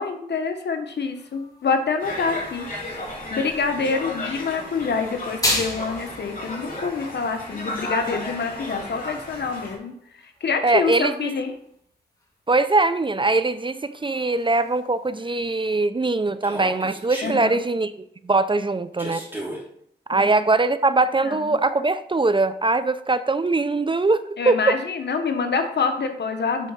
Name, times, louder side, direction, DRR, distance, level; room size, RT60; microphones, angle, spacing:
voice 1, 0.0-2.7 3.3-11.5 17.2-17.6 20.1-20.3 21.2-21.5 24.4-26.7, left 5 dB, 75° left, 6 dB, 1.0 m, -26 dB
sound 1, 0.8-15.8, left 1 dB, 20° left, 2.5 m, -37 dB
Conversation, 2.0-9.7, left 1 dB, 50° left, 2.9 m, -34 dB
voice 2, 10.6-11.1 12.5-17.9 18.2-19.2 20.1-24.8, right 3 dB, 30° right, 13 dB, 0.5 m, -21 dB
Human voice, 16.4-17.4 19.0-19.6, right 1 dB, 10° right, 3.1 m, -33 dB
8.2 x 4.8 x 5.7 m, 0.69 s
cardioid pair, 65°, 18 cm